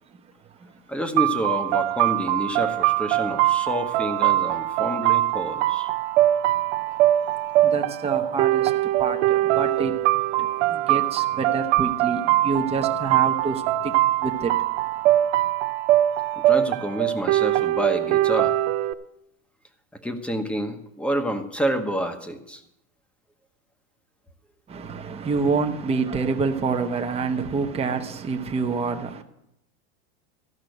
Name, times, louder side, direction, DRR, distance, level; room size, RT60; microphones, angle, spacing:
voice 1, 0.0-0.9 6.0-15.3 24.7-29.2, right 4 dB, 20° right, 1.0 m, -28 dB
voice 2, 0.9-5.9 16.3-18.6 20.0-22.6, equal, 5° left, 1.1 m, -28 dB
sound 1, 1.2-18.9, right 14 dB, 75° right, 0.7 m, -22 dB
13.5 x 5.8 x 7.9 m
supercardioid pair, 130°, 33 cm